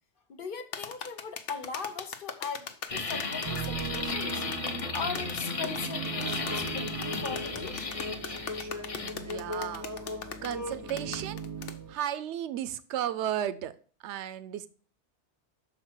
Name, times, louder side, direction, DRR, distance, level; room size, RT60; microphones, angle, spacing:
voice 1, 0.3-4.4 4.9-7.8, left 5 dB, 50° left, 8 dB, 1.0 m, -39 dB
sound 1, 0.7-11.8, left 7 dB, 90° left, 1.1 m, -40 dB
sound 2, 2.9-9.1, left 4 dB, 35° left, 0.7 m, -35 dB
sound 3, 3.4-12.0, right 2 dB, 20° right, 0.6 m, -38 dB
voice 2, 9.0-9.9 10.4-11.4 11.9-13.7 14.0-14.7, right 11 dB, 80° right, 14 dB, 0.9 m, -34 dB
6.2 x 4.2 x 6.2 m, 0.42 s
omnidirectional pair, 1.2 m